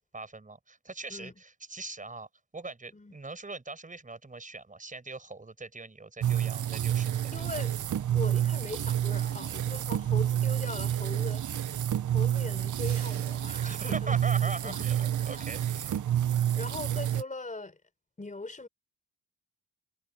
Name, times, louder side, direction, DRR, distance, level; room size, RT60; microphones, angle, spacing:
voice 1, 0.1-7.5 13.6-16.1, right 3 dB, 20° right, 5.1 m, -41 dB
sound 1, 6.2-17.2, right 11 dB, 50° right, 0.6 m, -29 dB
voice 2, 7.3-7.8 8.1-14.2 14.6-14.8 15.2-15.5 16.5-17.8 18.2-18.7, left 3 dB, 20° left, 3.9 m, -40 dB
sound 2, 12.7-13.7, right 8 dB, 75° right, 5.3 m, -49 dB
wide cardioid pair, 175°, 41 cm